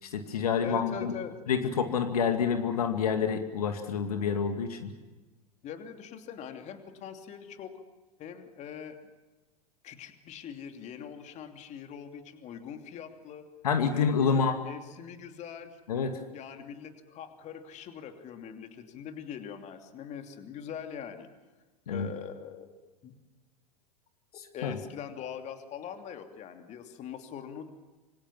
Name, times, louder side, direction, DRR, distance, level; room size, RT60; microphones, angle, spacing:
voice 1, 0.0-1.1 1.5-4.9 13.6-14.6 15.9-16.1 21.9-22.1 24.3-24.8, left 6 dB, 70° left, 7 dB, 2.3 m, -28 dB
voice 2, 0.6-1.3 5.6-7.8 8.2-9.0 9.8-13.4 13.9-15.8 16.3-21.3 21.9-22.7 23.0-23.2 24.5-27.7, left 8 dB, 35° left, 6 dB, 3.0 m, -42 dB
26.5 x 25.0 x 7.4 m, 1.2 s
figure-of-eight pair, 90°, 20 cm